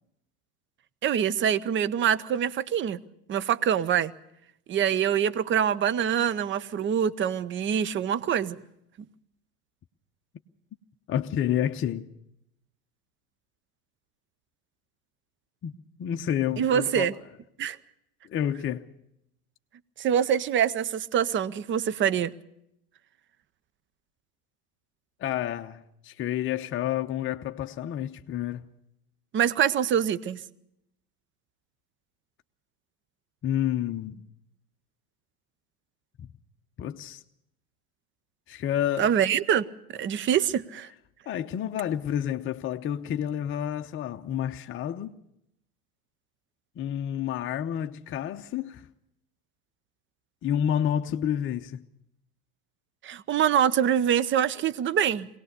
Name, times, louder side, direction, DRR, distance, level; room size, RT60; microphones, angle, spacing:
voice 1, 1.0-3.0 3.3-4.1 4.7-8.6 16.6-17.1 17.6-17.8 20.0-22.3 29.3-30.4 39.0-39.7 40.0-40.9 53.0-55.3, right 9 dB, 25° right, 0.8 m, -25 dB
voice 2, 11.1-12.1 15.6-15.7 16.0-17.1 18.2-18.9 25.2-28.7 33.4-34.2 36.2-36.3 36.8-37.2 38.5-39.1 41.3-45.2 46.8-48.9 50.4-51.8, left 10 dB, 25° left, 0.8 m, -29 dB
22.5 x 18.0 x 6.7 m
hypercardioid pair, 80°, 44 cm